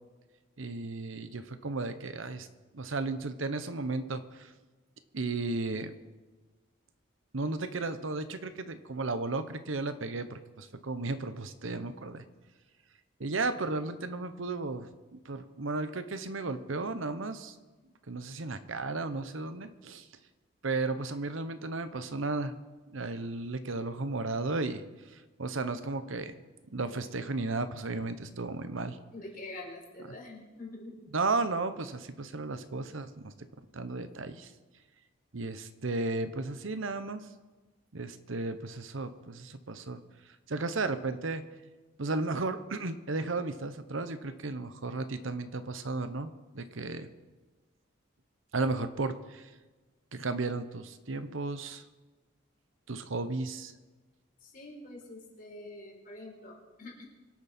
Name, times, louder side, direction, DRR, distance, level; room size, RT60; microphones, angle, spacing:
voice 1, 0.6-2.5 2.7-4.5 5.1-5.9 7.3-12.2 13.2-17.5 18.1-20.1 20.6-22.5 22.9-24.8 25.1-26.3 26.7-29.0 31.1-33.3 33.7-34.5 35.3-37.2 37.9-40.0 40.5-41.4 42.0-47.1 48.5-49.5 50.1-51.8 52.9-53.7, right 3 dB, 75° right, 10 dB, 0.9 m, -34 dB
voice 2, 29.1-30.9 54.4-57.0, left 2 dB, 40° left, -2 dB, 4.1 m, -45 dB
24.0 x 8.7 x 4.3 m, 1.2 s
head